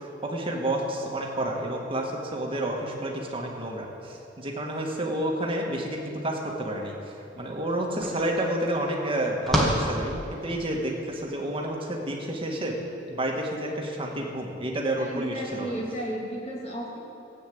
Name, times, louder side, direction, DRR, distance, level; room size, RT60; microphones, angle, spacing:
voice 1, 0.2-6.9 7.4-12.7 13.1-15.7, right 1 dB, 30° right, 0 dB, 1.9 m, -30 dB
sound 1, 7.4-7.5 7.7-10.8, equal, ahead, 2.0 m, -29 dB
voice 2, 15.0-17.0, right 1 dB, 35° left, -3 dB, 2.9 m, -33 dB
14.5 x 8.6 x 8.0 m, 2.7 s
head